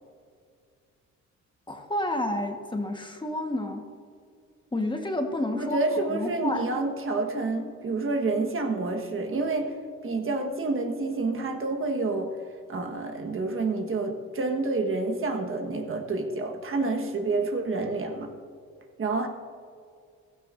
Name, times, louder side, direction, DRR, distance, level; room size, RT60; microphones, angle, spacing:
voice 1, 1.7-3.8 4.7-5.8 6.1-6.6, left 1 dB, 15° left, 4 dB, 1.3 m, -30 dB
voice 2, 5.5-9.8 10.0-12.3 12.7-18.3 19.0-19.3, right 3 dB, 45° right, 4 dB, 1.4 m, -28 dB
15.5 x 14.0 x 2.6 m, 2.3 s
cardioid pair, 90°, 30 cm